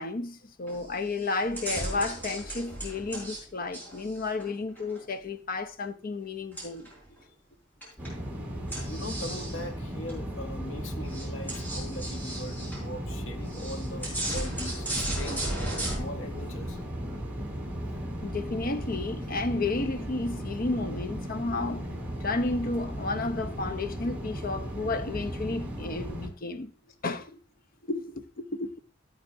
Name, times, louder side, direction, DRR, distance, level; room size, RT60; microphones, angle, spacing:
voice 1, 0.0-6.9 18.2-21.9 22.2-26.7 27.0-27.4 27.8-28.8, left 3 dB, 50° left, 0.7 m, -32 dB
sound 1, 0.7-0.9 1.2-3.4 3.7-5.0 6.6-7.1 7.8-8.2 8.7-9.6 10.1-10.2 10.7-10.8 11.0-12.8 13.5-16.0, right 1 dB, 10° left, 4.6 m, -35 dB
sound 2, 8.0-26.3, equal, 10° right, 2.4 m, -36 dB
voice 2, 8.7-15.5 15.8-16.8, left 1 dB, 85° left, 1.0 m, -41 dB
13.5 x 8.6 x 2.6 m
head